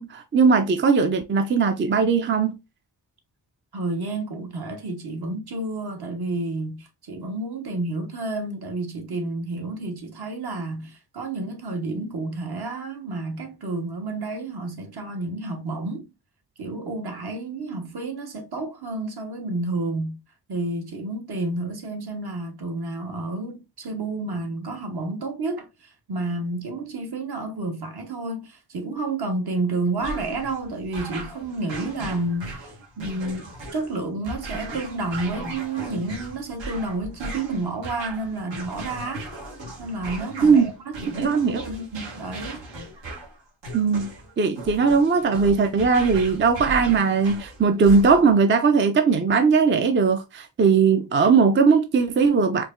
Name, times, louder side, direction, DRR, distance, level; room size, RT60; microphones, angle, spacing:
voice 1, 0.0-2.6 40.4-40.7 41.2-41.6 43.7-52.6, right 5 dB, 30° right, 0.4 m, -19 dB
voice 2, 3.7-16.1 16.6-20.2 20.5-39.3 39.8-42.7, right 2 dB, 60° right, 1.2 m, -30 dB
sound 1, 30.0-48.4, right 2 dB, 80° right, 1.4 m, -37 dB
4.5 x 2.8 x 2.5 m
wide cardioid pair, 110°, 43 cm